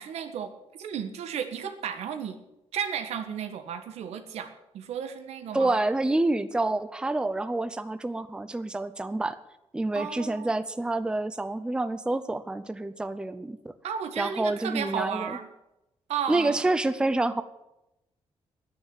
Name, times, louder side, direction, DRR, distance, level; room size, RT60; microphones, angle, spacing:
voice 1, 0.0-2.4 2.7-5.7 9.9-10.5 13.8-15.5 16.1-16.6, right 8 dB, 85° right, 8 dB, 1.6 m, -34 dB
voice 2, 5.5-9.4 9.7-13.7 14.2-15.4 16.3-17.4, right 2 dB, 10° right, 12 dB, 0.6 m, -28 dB
9.9 x 9.9 x 9.1 m, 0.91 s
cardioid pair, 150°, 11 cm